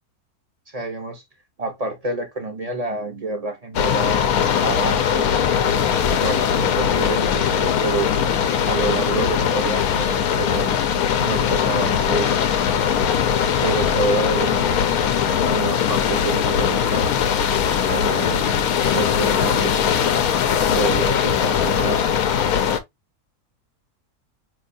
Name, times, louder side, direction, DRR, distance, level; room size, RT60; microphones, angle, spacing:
voice 1, 0.7-1.2 1.6-4.3 4.6-5.4 6.2-8.2 8.7-10.7 11.2-12.4 13.5-14.8 15.4-17.2 17.9-18.7 18.9-20.1 20.7-22.1, right 3 dB, 35° right, 0.6 m, -28 dB
sound 1, 3.7-22.8, left 8 dB, 75° left, 1.1 m, -20 dB
4.5 x 3.2 x 2.5 m
omnidirectional pair, 1.6 m